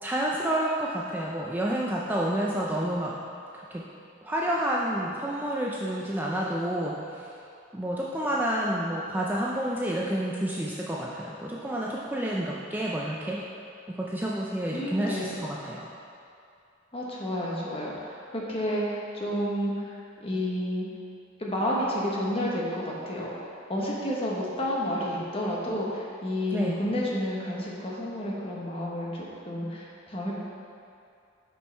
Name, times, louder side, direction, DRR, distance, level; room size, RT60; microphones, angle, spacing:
voice 1, 0.0-3.2 3.5-3.9 4.2-7.3 7.7-13.4 13.9-15.9 26.5-26.8, right 1 dB, 10° right, -4 dB, 0.4 m, -29 dB
voice 2, 14.7-15.4 16.9-20.9 21.4-23.3 23.7-30.3, equal, 30° left, -4 dB, 1.2 m, -30 dB
6.4 x 6.1 x 4.5 m, 2.5 s
head